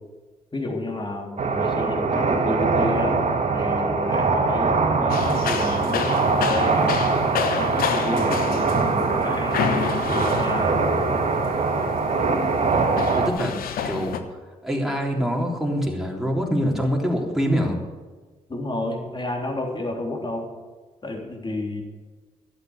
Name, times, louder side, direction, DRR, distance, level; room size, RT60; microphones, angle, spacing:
voice 1, 0.5-7.0 7.6-10.8 18.5-20.5 21.0-21.8, left 2 dB, 30° left, 1 dB, 3.4 m, -30 dB
sound 1, 1.4-13.3, right 4 dB, 50° right, 1.8 m, -22 dB
sound 2, 5.1-14.2, left 8 dB, 75° left, 1.0 m, -30 dB
voice 2, 13.1-13.5 13.8-14.2 14.6-17.8, equal, ahead, -1 dB, 3.6 m, -24 dB
12.0 x 8.2 x 8.0 m, 1.3 s
supercardioid pair, 50°, 15 cm